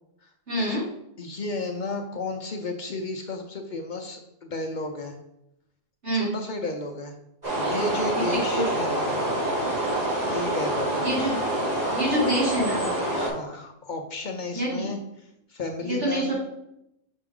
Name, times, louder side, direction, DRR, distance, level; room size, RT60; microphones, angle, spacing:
voice 1, 0.5-0.8 6.0-6.3 8.5-8.6 11.0-11.4 11.9-12.8 14.5-14.9 15.8-16.3, right 1 dB, 85° right, -7 dB, 3.0 m, -26 dB
voice 2, 1.2-5.1 6.1-7.1 7.6-9.2 10.3-11.0 13.1-16.3, left 2 dB, 50° left, 4 dB, 0.7 m, -33 dB
sound 1, 7.4-13.3, right 1 dB, 35° right, 2.4 m, -26 dB
5.8 x 5.3 x 3.7 m, 0.81 s
omnidirectional pair, 1.2 m